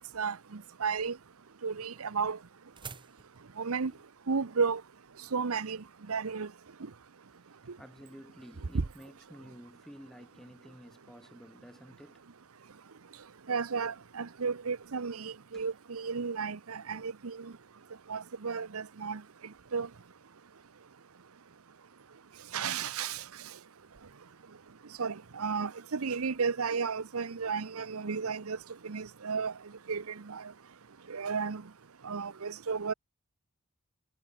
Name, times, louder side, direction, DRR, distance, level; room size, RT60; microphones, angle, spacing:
voice 1, 0.1-1.2 1.6-2.4 3.6-3.9 4.3-4.8 5.3-6.5 13.5-17.5 18.1-19.2 19.7-19.9 22.5-23.2 25.0-28.6 28.8-29.5 29.9-30.5 31.1-31.6 32.0-32.9, right 5 dB, 85° right, 0.8 m, -33 dB
sound 1, 1.3-6.3, right 5 dB, 20° right, 1.3 m, -52 dB
voice 2, 7.4-12.2 15.5-15.6, equal, ahead, 4.9 m, -52 dB
head